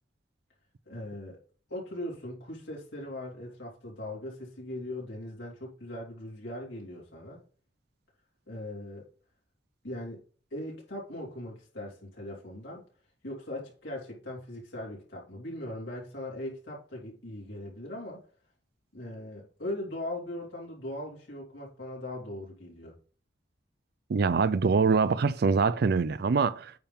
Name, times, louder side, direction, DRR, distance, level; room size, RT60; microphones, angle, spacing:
voice 1, 0.9-1.4 1.7-7.4 8.5-9.0 9.8-10.2 10.5-12.8 13.2-18.2 18.9-22.9, left 1 dB, 80° left, 3.5 m, -39 dB
voice 2, 24.1-26.7, right 5 dB, 55° right, 0.4 m, -24 dB
8.8 x 3.6 x 5.6 m
head